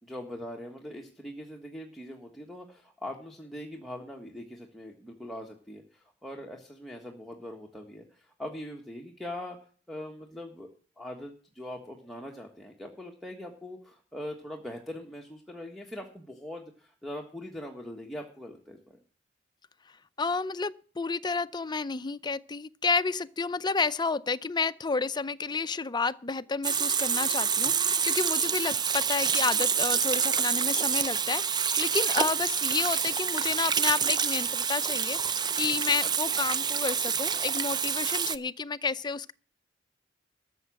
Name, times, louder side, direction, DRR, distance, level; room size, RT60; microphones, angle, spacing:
voice 1, 0.0-10.7 11.0-19.0, left 1 dB, ahead, 1.5 m, -42 dB
voice 2, 20.2-39.3, left 4 dB, 25° left, 0.5 m, -31 dB
Water tap faucet / Sink (filling or washing), 26.6-38.4, right 7 dB, 25° right, 0.5 m, -27 dB
13.5 x 7.2 x 7.6 m
head